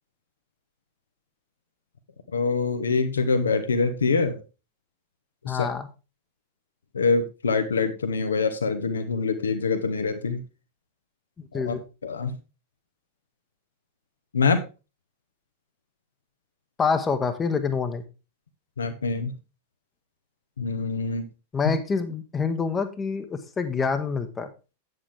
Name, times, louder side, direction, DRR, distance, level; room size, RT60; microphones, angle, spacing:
voice 1, 2.3-4.4 5.4-5.7 6.9-10.4 11.5-11.7 12.0-12.3 14.3-14.6 18.8-19.3 20.6-21.3, left 4 dB, 70° left, 8 dB, 0.9 m, -25 dB
voice 2, 5.5-5.9 11.5-11.8 16.8-18.0 21.5-24.5, left 5 dB, 20° left, 8 dB, 1.0 m, -26 dB
8.5 x 7.7 x 3.4 m, 0.30 s
figure-of-eight pair, 90°, 0 cm